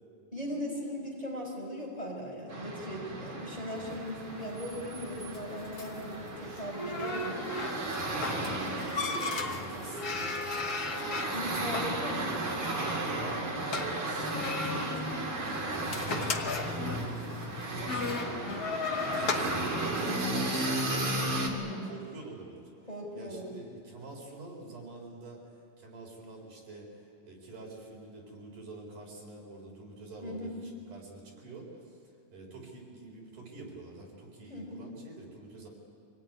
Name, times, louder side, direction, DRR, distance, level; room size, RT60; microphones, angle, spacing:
voice 1, 0.3-7.5 11.3-12.8 21.4-21.9 22.9-23.6 30.2-30.6 34.5-34.8, equal, 10° left, -2 dB, 5.0 m, -38 dB
sound 1, 2.5-21.5, right 1 dB, 40° right, 3.4 m, -35 dB
sound 2, 3.7-21.0, left 3 dB, 80° left, 0.8 m, -37 dB
voice 2, 8.0-10.8 11.0-12.0 12.7-15.2 15.5-16.1 16.7-18.8 19.1-22.7 23.1-32.0 32.3-35.7, right 2 dB, 70° right, -1 dB, 5.6 m, -46 dB
25.5 x 18.5 x 9.6 m, 2.4 s
omnidirectional pair, 3.8 m